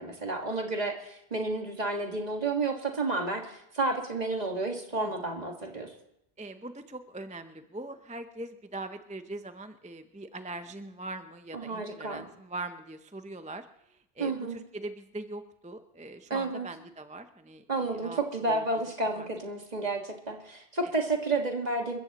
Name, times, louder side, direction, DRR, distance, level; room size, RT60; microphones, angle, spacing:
voice 1, 0.0-5.9 11.5-12.2 14.2-14.6 16.3-16.7 17.7-22.0, right 3 dB, 40° right, 2 dB, 1.9 m, -31 dB
voice 2, 6.4-18.2 18.5-18.6 19.2-19.3 20.8-20.9, right 2 dB, 10° right, 9 dB, 0.4 m, -42 dB
27.5 x 14.5 x 3.0 m, 0.79 s
omnidirectional pair, 1.1 m